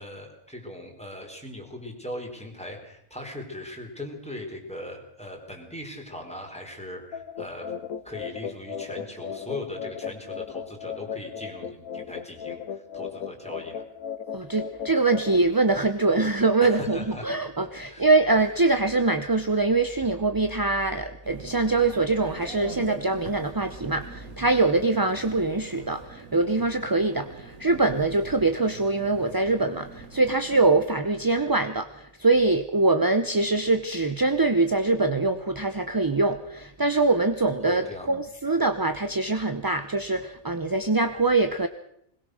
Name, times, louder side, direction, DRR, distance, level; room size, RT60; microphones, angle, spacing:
voice 1, 0.0-7.7 8.0-13.8 16.6-17.3 17.8-18.1 37.6-38.1, left 1 dB, 5° left, 1 dB, 4.5 m, -39 dB
sound 1, 7.1-15.4, left 7 dB, 85° left, 1.5 m, -36 dB
voice 2, 14.3-41.7, right 3 dB, 20° right, 9 dB, 0.7 m, -23 dB
sound 2, 21.2-30.8, right 5 dB, 80° right, 2.2 m, -44 dB
21.5 x 20.5 x 6.4 m, 0.73 s
omnidirectional pair, 1.4 m